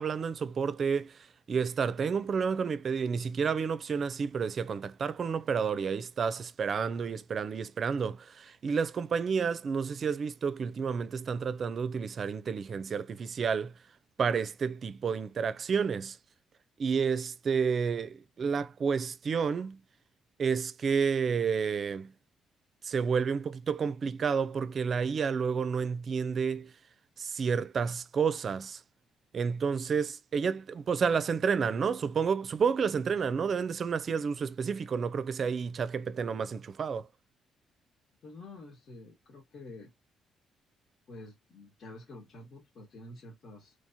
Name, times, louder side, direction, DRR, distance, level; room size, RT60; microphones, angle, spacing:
voice 1, 0.0-13.7 14.2-16.2 16.8-19.8 20.4-22.1 22.8-26.7 27.2-28.8 29.3-37.1, right 6 dB, 50° right, 0.4 m, -30 dB
voice 2, 38.2-39.9 41.1-43.7, left 2 dB, 55° left, 1.6 m, -48 dB
3.5 x 3.2 x 2.7 m
cardioid pair, 90°, 0 cm